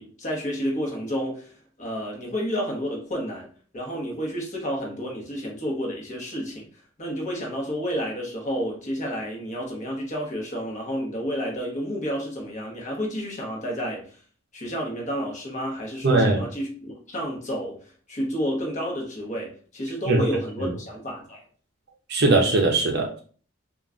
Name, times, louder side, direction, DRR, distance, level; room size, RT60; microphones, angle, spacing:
voice 1, 0.0-1.5 1.8-3.5 3.7-6.6 7.0-14.1 14.5-21.4, equal, 35° left, -1 dB, 0.8 m, -30 dB
voice 2, 16.0-16.4 20.1-20.2 20.6-20.7 22.1-23.2, right 3 dB, 50° right, 0 dB, 0.5 m, -20 dB
2.3 x 2.2 x 3.6 m, 0.43 s
head